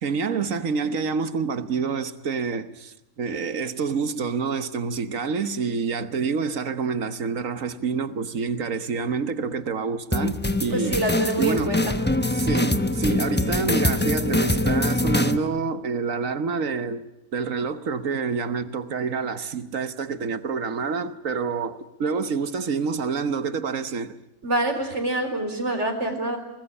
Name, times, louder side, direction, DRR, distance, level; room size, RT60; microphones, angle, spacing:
voice 1, 0.0-11.8 12.3-17.1 17.3-24.2, right 5 dB, 70° right, 1.5 m, -27 dB
sound 1, 10.1-15.4, left 1 dB, 10° left, 0.9 m, -23 dB
voice 2, 10.7-11.9 12.6-12.8 24.4-26.4, right 1 dB, 55° right, 4.2 m, -26 dB
23.0 x 19.5 x 9.9 m
omnidirectional pair, 1.5 m